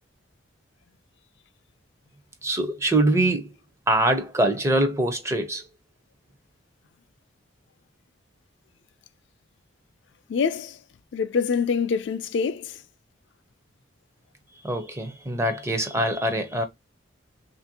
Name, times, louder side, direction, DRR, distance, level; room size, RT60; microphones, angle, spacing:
voice 1, 2.4-3.5 3.9-5.6 14.6-16.6, right 1 dB, 15° right, 0.5 m, -23 dB
voice 2, 10.3-10.8 11.1-12.8, left 5 dB, 60° left, 0.3 m, -25 dB
3.1 x 2.5 x 2.6 m
head